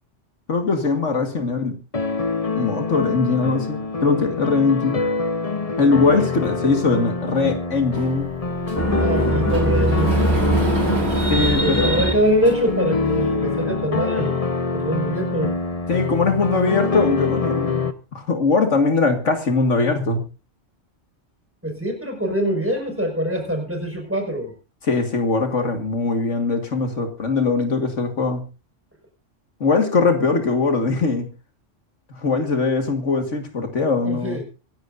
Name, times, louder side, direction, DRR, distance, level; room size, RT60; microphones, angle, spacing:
voice 1, 0.5-1.8 2.6-5.1 5.8-8.3 11.3-12.0 15.9-17.7 18.1-20.2 24.8-28.4 29.6-31.3 32.1-34.4, left 4 dB, 70° left, 5 dB, 2.1 m, -21 dB
sound 1, 1.9-17.9, left 4 dB, 30° left, 1.0 m, -25 dB
Sliding door, 7.9-12.9, right 2 dB, 55° right, 2.6 m, -31 dB
sound 2, 8.8-12.1, right 1 dB, 10° left, 2.4 m, -21 dB
voice 2, 9.0-10.2 11.6-14.4 14.7-15.5 21.6-24.5 34.0-34.4, equal, 10° right, 1 dB, 5.4 m, -23 dB
25.0 x 11.5 x 2.6 m, 0.34 s
omnidirectional pair, 1.3 m